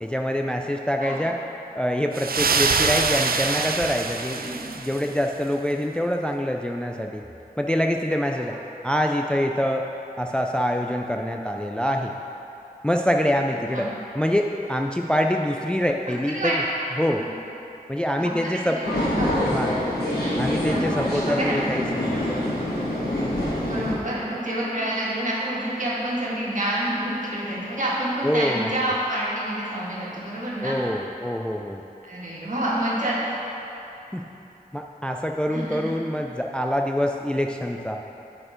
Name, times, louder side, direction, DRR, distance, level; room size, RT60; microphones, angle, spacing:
voice 1, 0.0-1.4 1.8-4.4 4.7-7.2 7.6-8.6 8.8-9.8 10.2-12.1 12.8-13.9 14.1-16.6 17.0-17.2 17.9-19.0 19.5-19.8 20.4-22.2 28.2-28.7 30.6-31.8 34.1-34.2 34.7-38.0, equal, 5° left, 3 dB, 0.3 m, -25 dB
sound 1, 2.1-5.2, right 4 dB, 70° right, 0.4 m, -24 dB
voice 2, 16.4-16.9 18.2-18.5 18.8-19.3 20.6-20.8 21.1-21.6 23.7-30.8 32.0-33.2 35.5-35.8, right 1 dB, 55° right, -7 dB, 1.8 m, -28 dB
sound 2, 18.8-23.9, left 1 dB, 85° left, 1.5 m, -25 dB
8.9 x 4.4 x 5.0 m, 2.9 s
wide cardioid pair, 65°, 16 cm